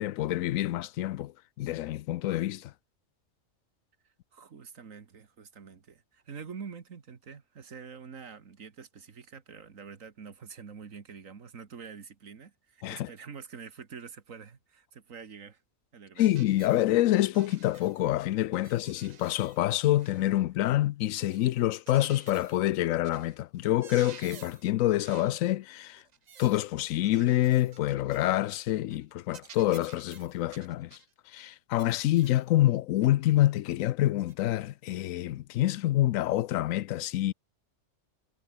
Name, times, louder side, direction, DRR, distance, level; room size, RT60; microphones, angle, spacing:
voice 1, 0.0-2.7 12.8-13.1 16.2-26.0 26.4-31.0 31.3-37.3, left 14 dB, 90° left, 1.0 m, -27 dB
voice 2, 4.3-15.6 15.9-16.2, right 6 dB, 80° right, 2.1 m, -46 dB
sound 1, 16.2-16.8 17.3-18.1 18.5-20.4 21.2-22.7 23.0-23.4 23.7-24.7 25.0-25.4 26.0-26.6 27.0-28.6 28.9-29.0 29.3-31.1 31.8-32.4 33.0-33.2 34.3-34.4, right 7 dB, 45° right, 0.6 m, -52 dB
omnidirectional pair, 1.4 m